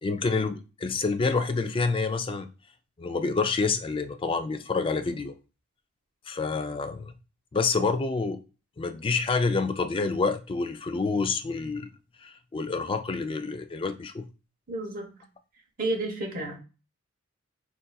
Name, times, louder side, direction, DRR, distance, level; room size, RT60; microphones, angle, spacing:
voice 1, 0.0-2.5 3.0-5.3 6.3-7.1 7.5-8.4 8.8-11.9 12.2-14.2, left 4 dB, 25° left, 0.3 m, -28 dB
voice 2, 14.7-15.1 15.8-16.6, right 2 dB, 40° right, 0.9 m, -31 dB
3.8 x 2.5 x 2.2 m
head